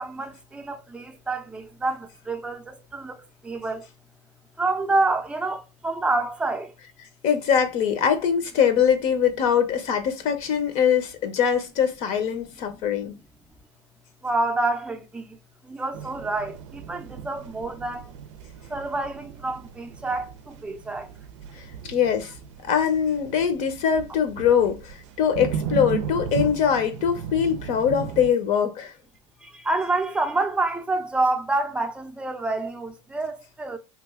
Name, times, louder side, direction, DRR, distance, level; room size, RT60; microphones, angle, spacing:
voice 1, 0.0-3.9 4.6-6.7 14.2-15.4 15.6-18.1 18.7-21.1 29.4-33.8, right 2 dB, 5° right, 0.5 m, -28 dB
voice 2, 7.2-13.1 21.9-22.3 22.6-28.9, left 8 dB, 55° left, 0.7 m, -22 dB
sound 1, 15.9-28.3, right 7 dB, 85° right, 0.5 m, -36 dB
3.0 x 2.3 x 3.5 m
supercardioid pair, 130°, 15 cm